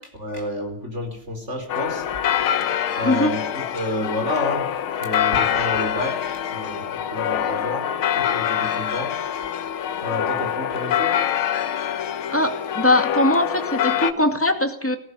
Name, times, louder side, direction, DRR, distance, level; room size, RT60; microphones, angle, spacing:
voice 1, 0.2-2.0 3.0-4.8 5.0-9.1 10.0-11.2, left 1 dB, 30° right, 4 dB, 4.7 m, -30 dB
sound 1, 1.7-14.1, left 10 dB, 75° left, 1.9 m, -25 dB
voice 2, 12.3-15.0, left 1 dB, 5° left, 6 dB, 2.1 m, -21 dB
19.0 x 14.5 x 10.0 m, 0.66 s
omnidirectional pair, 2.3 m